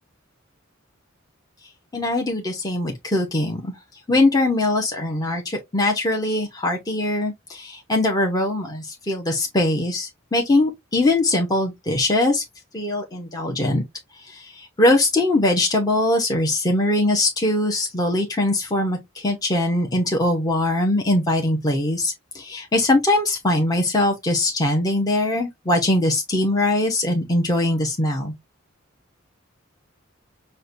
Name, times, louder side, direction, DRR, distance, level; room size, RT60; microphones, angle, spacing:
voice 1, 1.9-3.7 4.1-12.4 12.7-13.8 14.2-28.3, left 1 dB, 20° left, 0.8 m, -21 dB
6.4 x 2.2 x 2.6 m
head